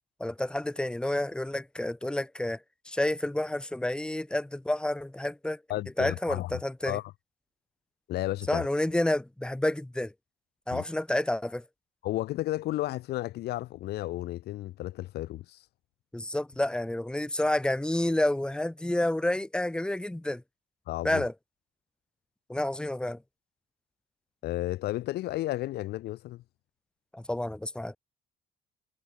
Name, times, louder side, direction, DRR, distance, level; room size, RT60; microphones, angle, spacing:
voice 1, 0.2-5.6 6.0-7.0 8.5-10.1 10.7-11.6 16.1-20.4 21.0-21.3 22.5-23.2 27.1-28.0, left 1 dB, 5° left, 1.5 m, -29 dB
voice 2, 5.7-6.5 6.8-7.0 8.1-8.6 10.7-10.8 12.0-15.6 20.9-21.2 24.4-26.4, left 16 dB, 70° left, 1.0 m, -33 dB
cardioid pair, 110°, 17 cm